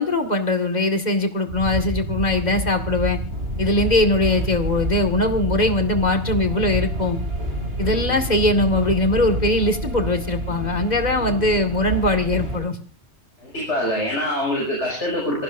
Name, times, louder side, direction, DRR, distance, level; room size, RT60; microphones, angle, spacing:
voice 1, 0.0-3.2 3.6-7.2 7.8-12.8, left 2 dB, 40° left, 6 dB, 2.2 m, -21 dB
sound 1, 1.5-12.6, equal, 70° right, 6.7 m, -28 dB
voice 2, 13.4-15.4, left 1 dB, 85° left, -2 dB, 6.9 m, -24 dB
27.5 x 19.0 x 2.7 m, 0.36 s
omnidirectional pair, 1.2 m